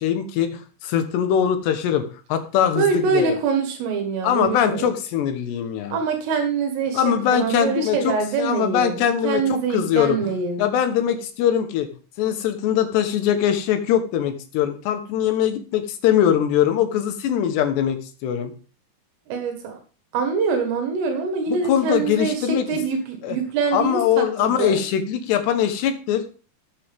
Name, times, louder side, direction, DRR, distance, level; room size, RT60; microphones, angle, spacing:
voice 1, 0.0-2.0 2.3-3.4 4.2-6.0 6.9-11.9 12.2-18.5 21.5-22.7 23.2-23.4 23.7-26.2, left 9 dB, 70° left, 8 dB, 2.9 m, -22 dB
voice 2, 2.8-4.9 5.9-7.0 7.3-10.6 19.3-19.8 20.1-24.8, right 5 dB, 80° right, 4 dB, 4.3 m, -24 dB
14.0 x 9.0 x 3.6 m, 0.36 s
omnidirectional pair, 5.8 m